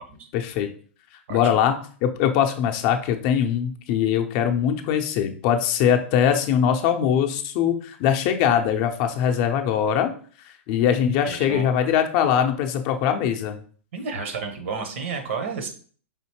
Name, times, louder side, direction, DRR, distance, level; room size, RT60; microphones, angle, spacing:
voice 1, 0.3-0.7 1.3-10.1 10.7-13.6, left 9 dB, 45° left, 5 dB, 0.5 m, -22 dB
voice 2, 11.2-11.7 13.9-15.7, right 5 dB, 65° right, 5 dB, 1.0 m, -31 dB
5.0 x 2.7 x 2.9 m, 0.43 s
hypercardioid pair, 110°, 7 cm